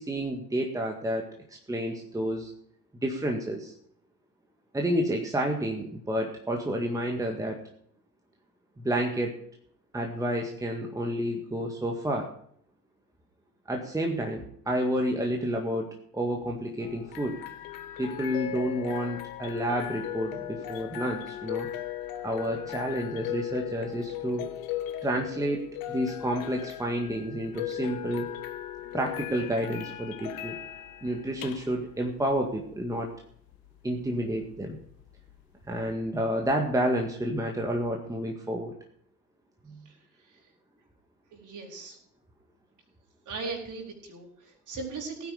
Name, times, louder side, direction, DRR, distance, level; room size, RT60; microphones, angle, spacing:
voice 1, 0.0-2.5 3.0-3.7 4.7-7.6 8.8-9.4 9.9-12.3 13.7-17.4 18.0-21.7 22.2-24.5 25.0-28.3 28.9-30.6 31.0-33.1 33.8-34.8 35.7-38.7 39.7-39.8, equal, 5° right, 2 dB, 1.8 m, -30 dB
sound 1, 16.8-35.9, left 12 dB, 50° left, 1.5 m, -38 dB
voice 2, 41.3-42.0 43.3-45.3, right 4 dB, 40° right, 1 dB, 4.5 m, -38 dB
17.0 x 9.4 x 5.0 m, 0.64 s
figure-of-eight pair, 75°, 45 cm